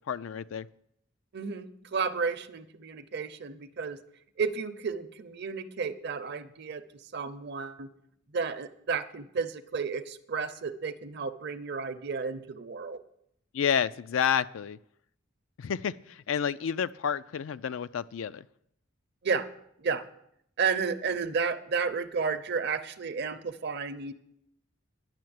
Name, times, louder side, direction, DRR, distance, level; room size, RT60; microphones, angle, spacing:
voice 1, 0.1-0.7 13.5-14.8 15.6-18.4, left 8 dB, 75° left, 15 dB, 0.4 m, -30 dB
voice 2, 1.3-4.0 4.4-6.9 7.1-7.9 8.3-13.0 19.2-19.5 19.8-20.0 20.6-24.1, right 5 dB, 55° right, 11 dB, 0.7 m, -32 dB
10.5 x 6.5 x 7.8 m, 0.73 s
head